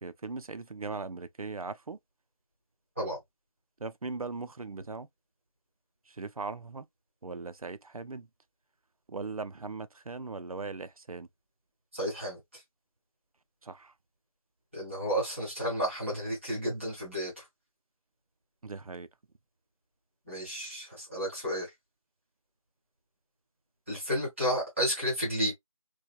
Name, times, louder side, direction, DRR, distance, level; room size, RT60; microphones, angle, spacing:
voice 1, 0.0-2.0 3.8-5.1 6.1-6.9 7.2-8.3 9.1-11.3 13.6-13.9 18.6-19.1, right 4 dB, 80° right, 0.5 m, -39 dB
voice 2, 11.9-12.6 14.7-17.5 20.2-21.7 23.9-25.5, equal, ahead, 1.4 m, -32 dB
4.6 x 2.2 x 2.3 m
figure-of-eight pair, 175°, 18 cm